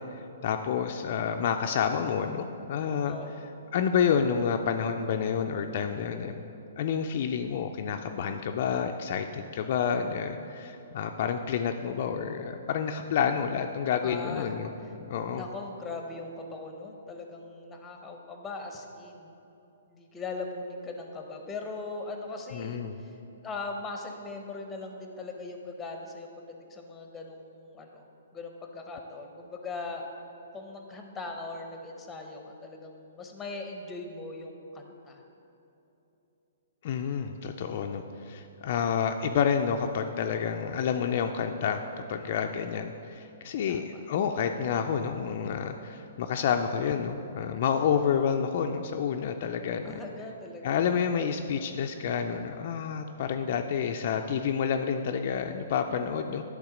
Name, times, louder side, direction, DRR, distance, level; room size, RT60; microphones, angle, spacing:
voice 1, 0.1-3.2 3.7-6.3 6.8-15.4 22.5-23.0 36.8-41.8 42.1-49.9 50.6-56.4, left 7 dB, 50° left, 5 dB, 0.3 m, -29 dB
voice 2, 3.1-3.5 14.0-14.5 15.3-19.3 19.9-23.2 23.4-26.3 26.7-28.1 28.3-30.1 30.5-35.2 42.2-42.6 43.7-43.8 49.8-50.8, left 3 dB, 10° left, 3 dB, 0.7 m, -40 dB
10.5 x 3.5 x 5.0 m, 3.0 s
hypercardioid pair, 150°, 0 cm